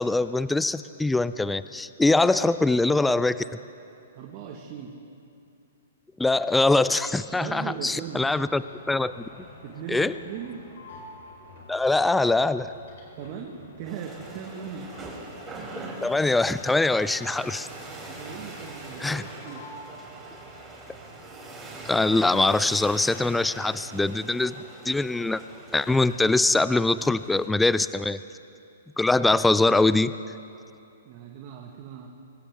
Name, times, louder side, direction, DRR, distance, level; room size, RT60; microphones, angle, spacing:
voice 1, 0.0-3.4 6.2-8.6 8.9-9.2 9.9-10.1 11.7-12.7 16.0-17.7 19.0-19.2 21.9-24.5 24.9-25.4 25.7-28.2 29.0-30.1, left 2 dB, 5° left, 15 dB, 0.3 m, -23 dB
voice 2, 4.1-4.9 7.3-8.2 9.6-10.6 12.2-12.3 13.2-14.9 18.1-19.6 31.0-32.1, right 8 dB, 40° right, 1 dB, 1.6 m, -39 dB
sound 1, 6.8-18.3 18.6-19.2 19.4-20.8, left 2 dB, 65° left, 4.3 m, -49 dB
sound 2, 13.8-27.5, right 2 dB, 15° right, 3.4 m, -42 dB
24.0 x 16.0 x 3.7 m, 2.7 s
hypercardioid pair, 130°, 0 cm